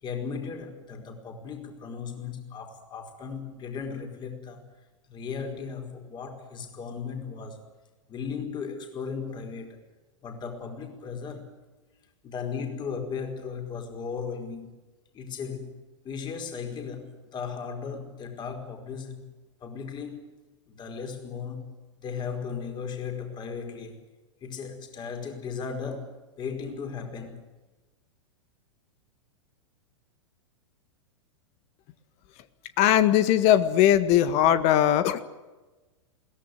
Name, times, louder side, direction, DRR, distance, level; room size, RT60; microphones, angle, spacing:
voice 1, 0.0-4.6 5.1-7.6 8.1-9.8 10.2-11.6 12.2-14.8 15.1-15.7 16.0-19.2 19.6-20.4 20.7-24.0 24.4-27.4, left 6 dB, 30° left, 5 dB, 5.0 m, -36 dB
voice 2, 32.8-35.3, left 11 dB, 45° left, 12 dB, 1.8 m, -20 dB
22.0 x 17.5 x 9.5 m, 1.2 s
hypercardioid pair, 100°, 16 cm